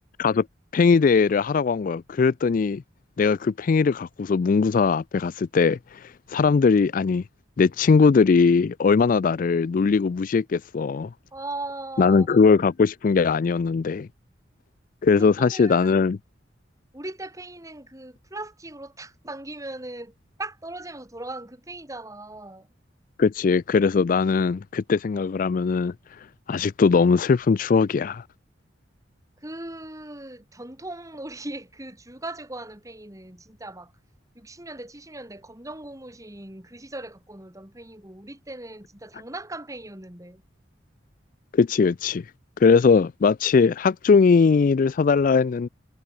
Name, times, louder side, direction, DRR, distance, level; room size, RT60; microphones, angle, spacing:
voice 1, 0.7-2.8 3.2-7.2 7.6-11.1 12.0-14.1 15.0-16.2 23.2-25.9 26.5-28.2 41.5-42.2 42.6-45.7, left 5 dB, 45° left, 0.3 m, -20 dB
voice 2, 11.3-12.5 15.2-16.0 16.9-20.1 20.4-22.7 29.4-33.9 34.4-40.4, right 2 dB, 15° right, 3.6 m, -39 dB
head